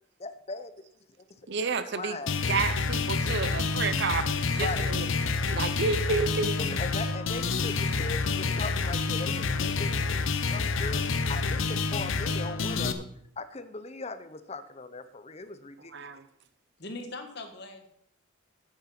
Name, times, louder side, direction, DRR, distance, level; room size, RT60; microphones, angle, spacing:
voice 1, 0.2-0.7 1.2-2.4 4.6-4.9 6.6-13.0 13.4-15.9, left 3 dB, 30° left, 12 dB, 0.7 m, -39 dB
voice 2, 1.5-2.2 2.5-5.1 5.5-6.6 15.9-16.2, right 4 dB, 55° right, 13 dB, 0.6 m, -30 dB
sound 1, 2.3-12.9, left 4 dB, 70° left, 0.8 m, -28 dB
voice 3, 16.8-17.9, left 2 dB, 50° left, 6 dB, 1.6 m, -41 dB
8.7 x 8.7 x 6.0 m, 0.69 s
head